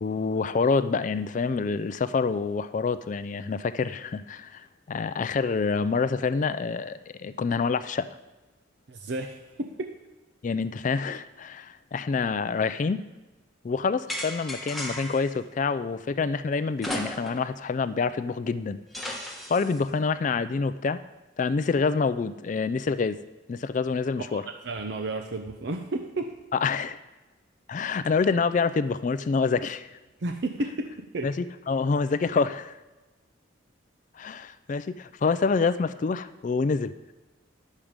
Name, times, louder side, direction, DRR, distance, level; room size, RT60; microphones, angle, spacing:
voice 1, 0.0-8.1 10.4-13.0 13.6-18.8 19.5-21.0 21.4-23.2 23.5-24.4 26.5-27.0 27.7-30.0 31.2-32.8 34.2-36.9, left 4 dB, 40° left, 13 dB, 0.3 m, -27 dB
voice 2, 8.9-9.9 24.3-24.4 24.6-26.3 30.2-31.3, right 2 dB, 60° right, 5 dB, 0.6 m, -32 dB
sound 1, 14.1-15.3 16.8-17.5 17.9-18.0 18.9-19.8, left 1 dB, ahead, 1.3 m, -35 dB
11.0 x 7.4 x 5.1 m, 1.1 s
head